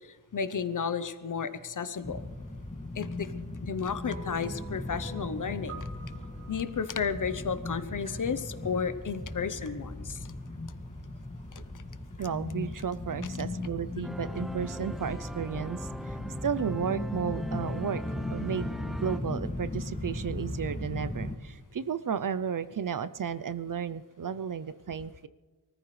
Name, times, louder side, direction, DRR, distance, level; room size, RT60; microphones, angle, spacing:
voice 1, 0.3-2.2 3.0-3.3 3.6-5.8 6.5-10.2, left 6 dB, 50° left, 12 dB, 0.8 m, -32 dB
sound 1, 2.0-21.4, left 2 dB, 15° left, 2.2 m, -37 dB
sound 2, 4.1-8.4, right 5 dB, 35° right, 2.6 m, -49 dB
voice 2, 12.2-18.0 18.3-25.3, right 7 dB, 55° right, 13 dB, 0.6 m, -33 dB
sound 3, 14.0-19.2, right 1 dB, ahead, 0.5 m, -42 dB
24.0 x 14.0 x 3.2 m, 1.3 s
wide cardioid pair, 85°, 40 cm